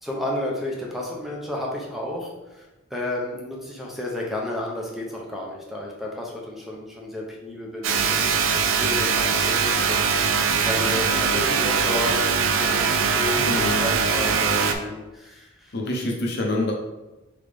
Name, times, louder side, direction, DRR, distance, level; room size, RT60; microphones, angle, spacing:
voice 1, 0.0-2.7 2.9-15.7, left 1 dB, ahead, -2 dB, 0.6 m, -32 dB
sound 1, 7.8-14.7, right 5 dB, 70° right, 0.4 m, -22 dB
voice 2, 13.3-13.8 15.7-16.7, left 2 dB, 50° left, -1 dB, 0.6 m, -26 dB
3.8 x 3.5 x 3.4 m, 1.1 s
head